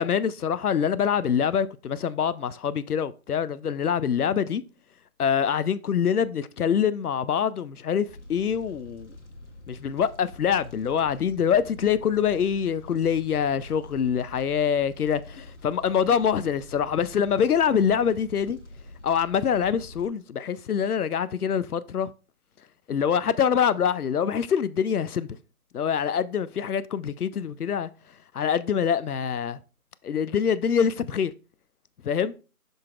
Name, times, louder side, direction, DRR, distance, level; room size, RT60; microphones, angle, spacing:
voice 1, 0.0-4.6 5.2-9.1 9.7-18.6 19.0-22.1 22.9-25.3 25.7-27.9 28.3-29.6 30.0-31.3 32.0-32.3, left 7 dB, 85° left, 0.6 m, -25 dB
Fire, 8.1-20.1, left 1 dB, 55° left, 1.4 m, -46 dB
11.5 x 3.9 x 2.4 m
figure-of-eight pair, 175°, 44 cm